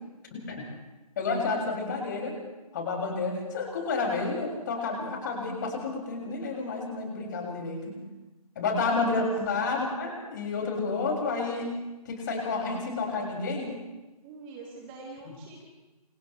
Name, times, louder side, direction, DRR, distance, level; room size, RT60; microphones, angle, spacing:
voice 1, 0.3-0.6 1.2-2.3 2.7-8.0 8.6-11.7 12.1-13.8, left 3 dB, 30° left, 0 dB, 7.1 m, -30 dB
voice 2, 14.2-15.6, right 3 dB, 15° right, 0 dB, 2.1 m, -44 dB
29.5 x 28.5 x 3.5 m, 1.1 s
figure-of-eight pair, 150°, 20 cm